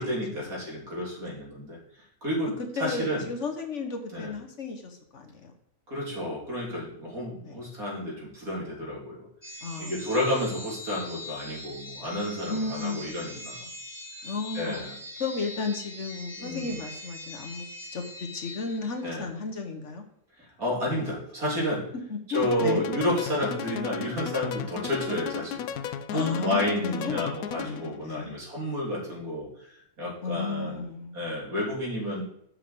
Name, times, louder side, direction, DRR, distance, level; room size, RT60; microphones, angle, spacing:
voice 1, 0.0-1.8 2.2-2.5 2.8-3.2 4.1-4.3 5.9-9.3 9.8-13.6 14.5-15.0 16.4-16.8 19.0-19.3 20.4-21.9 22.3-29.5 30.0-30.8 31.1-32.2, left 1 dB, 70° right, -3 dB, 3.9 m, -31 dB
voice 2, 2.6-5.5 7.4-7.6 9.6-9.9 12.5-13.5 14.2-14.8 15.2-20.0 22.1-22.8 26.1-28.4 30.2-31.1, left 4 dB, 55° left, 3 dB, 1.5 m, -33 dB
sound 1, 9.4-19.2, left 1 dB, 25° left, 2.5 m, -42 dB
sound 2, 22.3-28.0, left 8 dB, 75° left, 1.1 m, -35 dB
7.8 x 5.8 x 7.8 m, 0.72 s
omnidirectional pair, 1.6 m